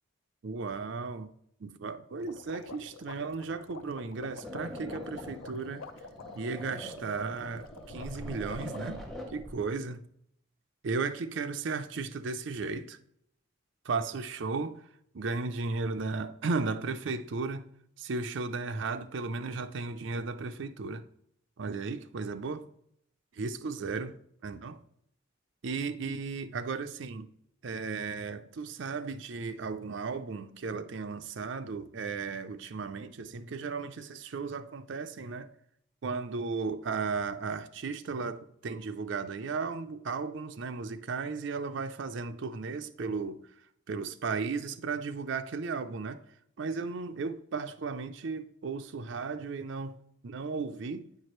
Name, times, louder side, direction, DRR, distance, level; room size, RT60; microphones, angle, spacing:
voice 1, 0.4-1.3 1.6-5.9 6.3-10.0 10.8-13.0 13.8-14.8 15.1-17.7 18.0-21.0 21.6-22.7 23.3-24.1 24.4-24.8 25.6-27.3 27.6-35.5 36.0-43.4 43.9-46.2 46.6-50.0 50.2-51.1, right 4 dB, 65° right, 0.5 m, -35 dB
sound 1, 2.2-8.8, left 4 dB, 75° left, 0.5 m, -48 dB
sound 2, 4.4-9.6, equal, ahead, 0.7 m, -43 dB
8.6 x 4.7 x 3.1 m
head